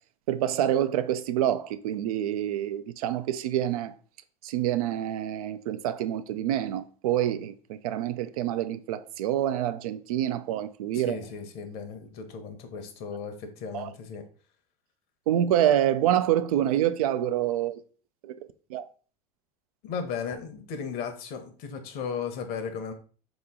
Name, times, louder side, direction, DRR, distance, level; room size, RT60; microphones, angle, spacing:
voice 1, 0.3-3.9 4.4-11.2 13.7-13.9 15.3-17.8 18.2-18.3 18.7-18.9, right 11 dB, 75° right, 0.4 m, -27 dB
voice 2, 10.9-14.2 19.8-22.9, left 6 dB, 55° left, 0.9 m, -36 dB
3.9 x 3.0 x 3.6 m
hypercardioid pair, 85°, 19 cm